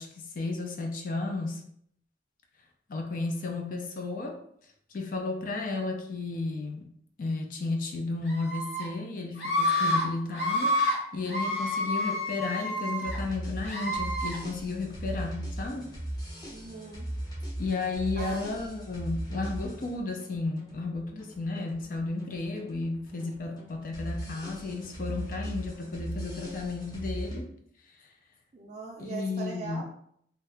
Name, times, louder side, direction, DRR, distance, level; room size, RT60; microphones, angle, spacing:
voice 1, 0.0-1.6 2.9-4.4 4.9-6.9 7.2-15.9 17.6-27.5 29.0-29.8, left 3 dB, 50° left, 3 dB, 0.4 m, -33 dB
Screaming, 8.3-8.8 9.4-10.0 10.3-10.9 11.3-13.2 13.6-14.3, left 1 dB, 90° left, 1.2 m, -28 dB
sound 1, 13.0-27.4, right 1 dB, 20° left, 0.7 m, -38 dB
voice 2, 16.5-17.1 18.2-18.6 28.5-29.8, right 4 dB, 40° right, -4 dB, 0.4 m, -40 dB
2.7 x 2.3 x 3.3 m, 0.67 s
head